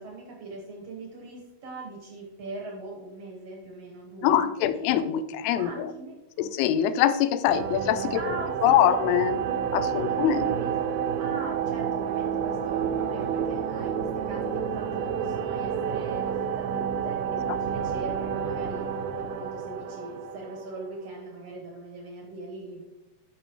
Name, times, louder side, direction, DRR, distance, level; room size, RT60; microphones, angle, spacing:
voice 1, 0.0-4.5 5.6-6.5 8.1-9.0 9.9-18.9 19.2-22.8, right 2 dB, 70° right, 0 dB, 1.5 m, -41 dB
voice 2, 4.2-5.9 6.4-8.2 8.6-9.4 9.7-10.4, left 11 dB, 85° left, 11 dB, 2.5 m, -23 dB
sound 1, 7.5-21.0, right 7 dB, 90° right, 2.7 m, -30 dB
13.5 x 5.1 x 3.0 m, 1.0 s
omnidirectional pair, 4.6 m